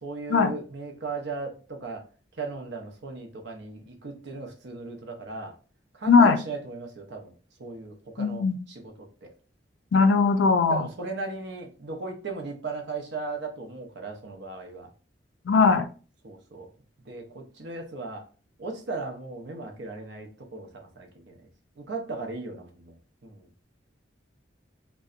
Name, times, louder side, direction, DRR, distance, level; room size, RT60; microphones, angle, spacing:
voice 1, 0.0-2.0 2.3-5.6 5.9-7.3 7.6-8.9 9.2-9.3 10.7-14.9 15.5-15.7 16.2-16.7 17.1-18.3 18.6-21.5 21.8-23.0 23.2-23.5, right 3 dB, 65° right, 3 dB, 0.6 m, -37 dB
voice 2, 6.1-6.4 8.2-8.6 9.9-10.9 15.5-15.9, left 4 dB, 70° left, 8 dB, 0.4 m, -19 dB
2.6 x 2.1 x 2.4 m, 0.37 s
head